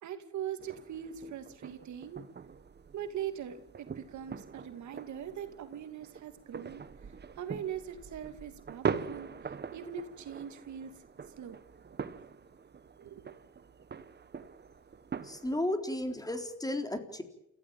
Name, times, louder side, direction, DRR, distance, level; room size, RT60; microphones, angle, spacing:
voice 1, 0.0-2.2 2.9-11.0 11.4-11.6 13.0-13.4, right 9 dB, 70° right, 8 dB, 2.6 m, -41 dB
sound 1, 0.6-15.6, right 6 dB, 35° right, 1.3 m, -42 dB
voice 2, 15.2-17.2, left 1 dB, 10° left, 6 dB, 3.8 m, -33 dB
28.5 x 15.5 x 9.0 m, 0.83 s
cardioid pair, 90°, 30 cm